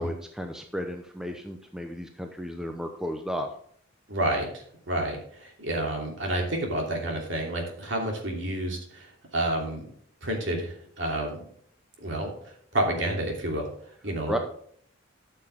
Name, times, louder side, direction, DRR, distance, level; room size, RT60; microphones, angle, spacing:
voice 1, 0.0-3.5 14.3-14.4, equal, 5° right, 4 dB, 0.7 m, -33 dB
voice 2, 4.1-9.9 10.2-11.4 12.0-13.7 14.0-14.4, right 1 dB, 60° right, 1 dB, 2.9 m, -30 dB
12.5 x 6.7 x 3.6 m, 0.62 s
head